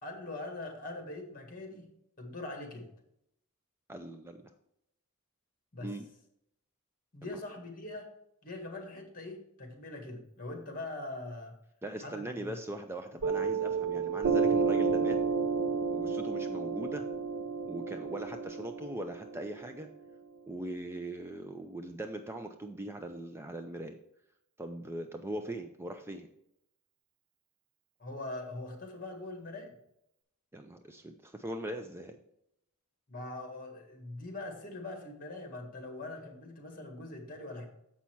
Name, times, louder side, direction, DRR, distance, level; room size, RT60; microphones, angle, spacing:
voice 1, 0.0-1.9 2.2-2.9 5.7-5.9 7.1-8.1 8.4-11.5 12.0-12.6 28.0-29.7 33.1-37.7, left 2 dB, 40° left, 3 dB, 1.7 m, -42 dB
voice 2, 3.9-4.5 5.8-6.1 7.2-7.4 11.8-15.2 15.9-17.1 17.7-19.9 20.5-24.0 24.6-26.3 30.5-32.2, right 1 dB, 10° right, 6 dB, 0.4 m, -40 dB
Piano, 13.2-20.3, right 5 dB, 65° right, 0.5 m, -31 dB
7.3 x 5.6 x 4.5 m, 0.78 s
head